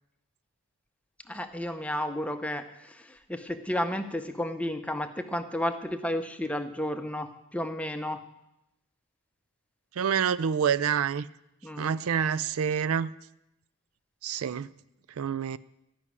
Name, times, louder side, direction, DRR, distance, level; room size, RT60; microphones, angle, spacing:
voice 1, 1.3-8.2 11.6-11.9, left 1 dB, 5° left, 0.7 m, -32 dB
voice 2, 10.0-11.3 11.8-13.1 14.2-14.7 15.2-15.6, right 7 dB, 75° right, 0.4 m, -27 dB
13.5 x 6.1 x 9.5 m
head